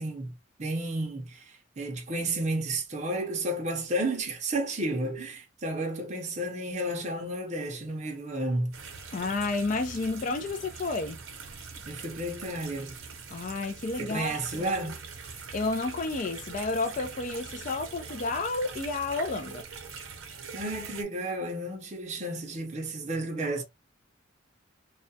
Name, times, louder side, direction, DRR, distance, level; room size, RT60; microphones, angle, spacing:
voice 1, 0.0-8.8 11.9-13.0 14.0-15.0 20.5-23.6, right 1 dB, 35° right, 0.5 m, -32 dB
sound 1, 8.7-21.0, right 5 dB, 75° right, 0.7 m, -43 dB
voice 2, 9.1-11.2 13.3-14.8 15.5-19.6, left 3 dB, 40° left, 0.3 m, -31 dB
2.3 x 2.1 x 2.6 m
head